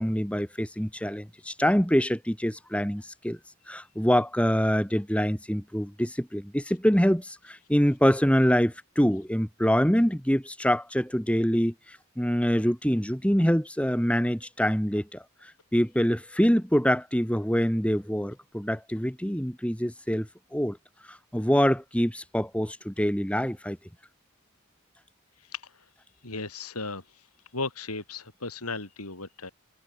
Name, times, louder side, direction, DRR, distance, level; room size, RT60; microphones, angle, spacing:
voice 1, 0.0-3.4 3.7-20.8 21.1-23.8, equal, 5° left, 2.7 m, -25 dB
voice 2, 25.4-25.9 26.2-27.3 27.5-29.5, left 3 dB, 90° left, 6.9 m, -36 dB
head